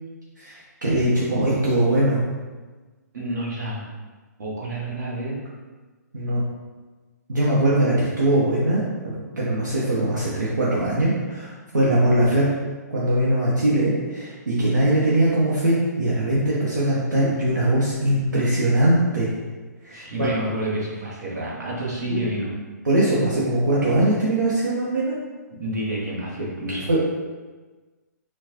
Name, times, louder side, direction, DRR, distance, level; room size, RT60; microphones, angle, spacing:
voice 1, 0.4-2.2 6.1-6.4 7.3-12.5 12.9-19.3 19.8-20.3 22.1-22.2 22.8-25.2 26.9-27.1, right 1 dB, 80° right, -7 dB, 0.9 m, -21 dB
voice 2, 3.1-3.9 4.4-5.4 19.9-22.5 25.5-26.9, right 1 dB, 65° right, -5 dB, 1.2 m, -29 dB
4.5 x 2.3 x 2.8 m, 1.3 s
figure-of-eight pair, 130°, 10 cm